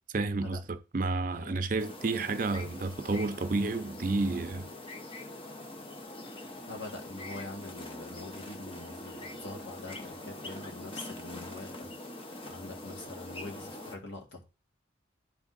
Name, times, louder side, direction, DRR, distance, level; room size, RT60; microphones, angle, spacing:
voice 1, 0.1-4.7, right 3 dB, 45° right, 0.5 m, -31 dB
sound 1, 1.8-14.0, left 1 dB, 30° left, 0.7 m, -43 dB
voice 2, 6.7-14.4, left 2 dB, 70° left, 1.8 m, -44 dB
10.0 x 3.6 x 4.0 m
head